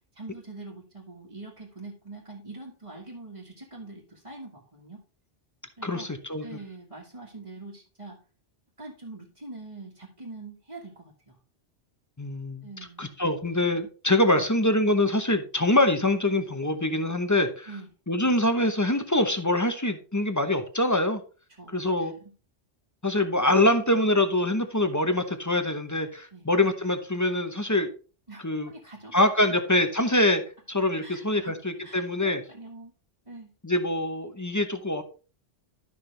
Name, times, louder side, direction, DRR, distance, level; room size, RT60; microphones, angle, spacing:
voice 1, 0.1-5.0 5.8-6.1 6.4-8.2 8.8-11.4 12.6-13.1 14.4-14.5 17.7-17.9 21.6-22.3 26.3-26.5 28.3-29.2 31.0-31.6 31.8-32.9 33.3-33.5, right 2 dB, 30° right, -5 dB, 1.7 m, -44 dB
voice 2, 5.8-6.4 12.2-12.7 13.0-17.7 18.1-21.2 21.7-22.1 23.0-27.9 28.4-28.7 29.1-30.4 30.7-32.4 33.6-35.0, left 1 dB, 15° left, 8 dB, 0.8 m, -24 dB
12.0 x 5.9 x 3.3 m, 0.36 s
omnidirectional pair, 1.2 m